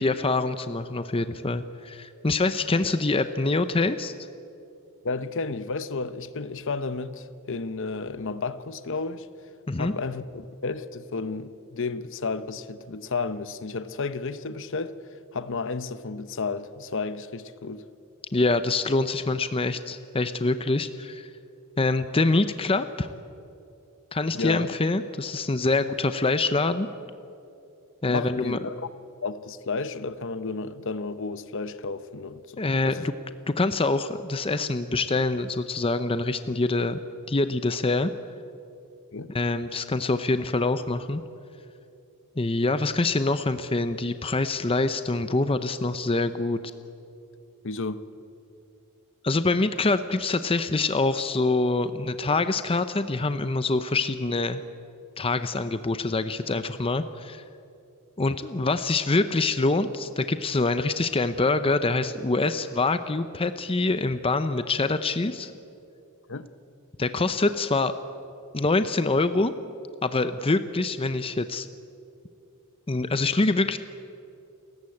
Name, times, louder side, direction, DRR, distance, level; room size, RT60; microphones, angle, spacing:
voice 1, 0.0-4.1 9.7-9.9 18.3-21.3 21.8-23.1 24.1-26.9 28.0-28.6 32.6-33.1 33.5-37.0 37.3-38.1 39.3-41.2 42.4-46.6 49.2-54.6 55.2-57.4 58.2-65.5 67.0-67.9 68.5-69.5 70.0-71.7 72.9-73.8, left 3 dB, 25° left, 0.7 m, -25 dB
voice 2, 5.0-9.3 9.8-15.0 15.3-17.8 24.3-24.7 28.1-28.9 29.2-33.1 39.1-39.3 47.6-48.0 66.3-66.5, left 4 dB, 60° left, 0.9 m, -32 dB
29.5 x 14.5 x 8.6 m
head